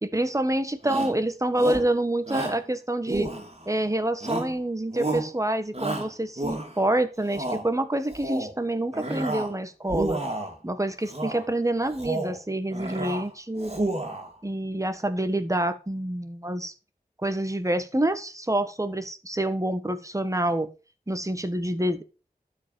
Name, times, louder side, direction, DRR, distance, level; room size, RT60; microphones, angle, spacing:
voice 1, 0.1-3.3 3.7-10.2 10.6-13.7 14.4-16.7 17.2-20.7 21.1-22.0, right 1 dB, 20° right, 10 dB, 1.5 m, -27 dB
Shout, 0.8-1.2 1.6-1.9 2.3-2.6 3.1-3.7 4.2-4.6 4.9-5.3 5.7-6.8 7.2-7.6 8.1-8.5 8.9-9.5 9.8-10.6 11.1-11.4 11.9-12.4 12.7-13.2 13.6-14.3, right 2 dB, 40° right, 2.8 m, -31 dB
12.0 x 5.1 x 6.9 m, 0.33 s
wide cardioid pair, 50°, 15 cm